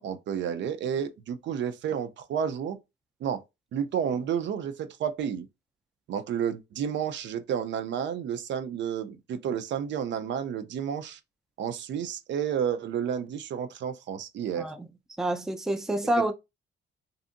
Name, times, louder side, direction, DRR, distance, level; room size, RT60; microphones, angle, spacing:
voice 1, 0.0-2.8 3.2-3.4 3.7-5.5 6.1-11.2 11.6-14.7, right 8 dB, 65° right, 0.5 m, -31 dB
voice 2, 15.2-16.3, right 1 dB, ahead, 0.4 m, -27 dB
2.6 x 2.4 x 2.5 m
cardioid pair, 90°, 20 cm